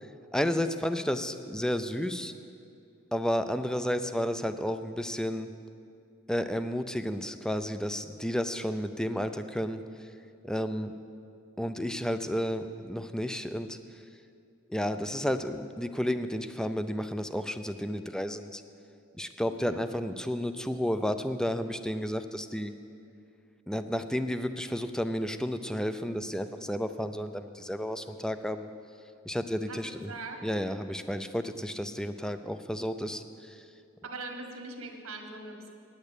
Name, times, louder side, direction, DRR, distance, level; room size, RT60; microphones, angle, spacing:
voice 1, 0.3-2.3 3.1-5.5 6.3-10.1 10.4-10.9 11.6-14.0 14.7-18.6 19.2-22.7 23.7-28.7 29.2-30.1 30.4-33.7, equal, 5° left, 10 dB, 0.4 m, -32 dB
voice 2, 19.5-19.9 29.6-30.4 31.6-31.9 34.0-35.7, right 2 dB, 80° right, 3 dB, 1.6 m, -42 dB
9.7 x 8.8 x 8.1 m, 2.4 s
head